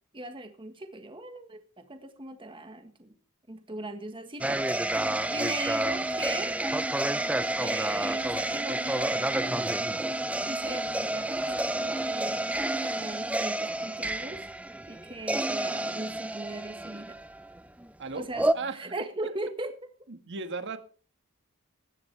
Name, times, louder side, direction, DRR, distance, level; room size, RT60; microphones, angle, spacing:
voice 1, 0.1-3.1 3.5-4.6 4.8-6.6 7.6-9.2 10.4-12.5 12.7-14.5 14.9-17.2 18.1-19.7, right 2 dB, 25° right, 7 dB, 1.5 m, -39 dB
sound 1, 4.4-17.9 18.4-18.5, right 1 dB, 5° right, 0.6 m, -29 dB
voice 2, 18.5-19.3 20.1-20.8, right 4 dB, 55° right, 9 dB, 1.7 m, -36 dB
17.0 x 12.5 x 3.4 m, 0.37 s
head